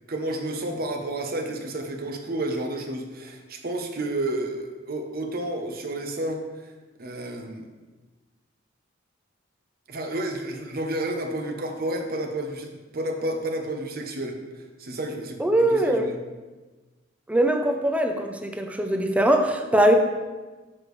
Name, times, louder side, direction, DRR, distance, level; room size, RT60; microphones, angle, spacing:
voice 1, 0.1-6.5 7.0-7.7 9.9-14.4 14.8-16.2, right 1 dB, 50° right, 3 dB, 0.9 m, -31 dB
voice 2, 15.4-16.0 17.3-19.9, right 1 dB, 5° right, 4 dB, 0.5 m, -21 dB
7.2 x 6.6 x 3.2 m, 1.2 s
head